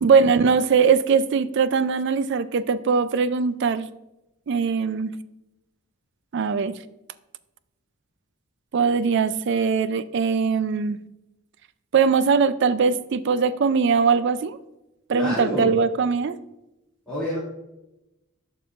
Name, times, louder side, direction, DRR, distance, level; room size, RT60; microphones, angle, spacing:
voice 1, 0.0-3.9 4.5-5.1 6.3-6.7 8.7-11.0 11.9-14.6 15.1-16.4, right 5 dB, 50° right, 15 dB, 0.3 m, -21 dB
voice 2, 15.1-15.7 17.1-17.4, equal, 5° left, -11 dB, 2.4 m, -27 dB
11.0 x 5.5 x 2.5 m, 0.93 s
head